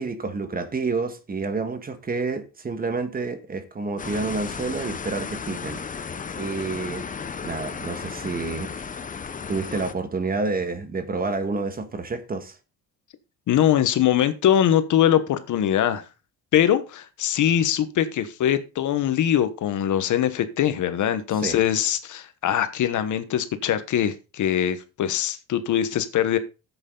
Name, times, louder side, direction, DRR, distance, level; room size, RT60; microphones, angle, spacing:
voice 1, 0.0-7.1 7.4-8.9 9.5-12.6 21.3-21.6, right 3 dB, 25° right, 1.6 m, -29 dB
sound 1, 4.0-9.9, left 6 dB, 25° left, 0.8 m, -34 dB
voice 2, 13.5-16.0 16.5-26.4, left 10 dB, 65° left, 1.2 m, -22 dB
10.5 x 8.1 x 3.9 m
cardioid pair, 130°, 32 cm